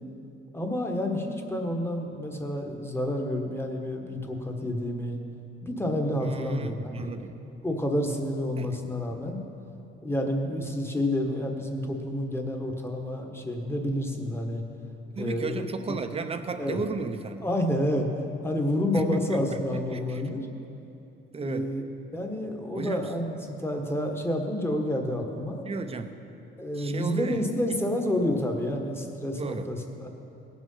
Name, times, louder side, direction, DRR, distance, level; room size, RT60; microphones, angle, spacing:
voice 1, 0.5-5.2 5.6-7.1 7.6-9.4 10.0-14.6 15.2-15.6 15.9-16.0 16.6-16.8 17.4-18.1 18.4-20.4 21.4-21.8 22.1-25.6 26.6-30.1, left 1 dB, 10° left, 2 dB, 1.3 m, -29 dB
voice 2, 6.2-7.3 8.6-8.7 15.1-17.5 18.9-20.2 21.3-21.7 22.7-23.1 25.6-26.2 26.7-27.4 29.4-29.7, right 4 dB, 30° right, 8 dB, 0.8 m, -34 dB
18.0 x 6.2 x 5.6 m, 3.0 s
cardioid pair, 105°, 21 cm